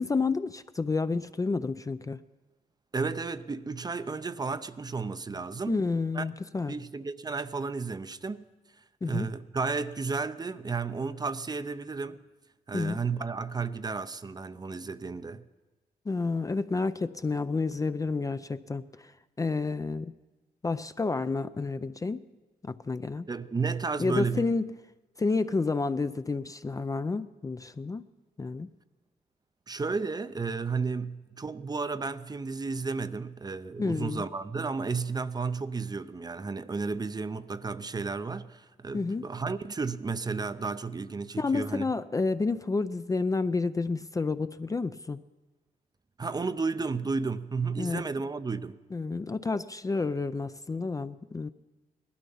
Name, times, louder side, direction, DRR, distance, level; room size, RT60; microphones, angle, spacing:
voice 1, 0.0-2.2 5.7-6.7 9.0-9.3 12.7-13.0 16.1-19.1 19.4-20.1 20.6-22.2 22.6-23.3 24.0-24.7 25.2-28.0 28.4-28.7 33.8-34.2 38.9-39.3 41.4-45.2 47.8-48.0 48.9-51.5, left 3 dB, 25° left, 0.4 m, -30 dB
voice 2, 2.9-5.8 6.1-6.3 6.7-8.5 9.0-12.2 12.7-15.4 23.3-24.5 29.7-41.9 46.2-48.8, right 4 dB, 25° right, 0.5 m, -33 dB
19.0 x 12.5 x 5.6 m
cardioid pair, 95°, 15 cm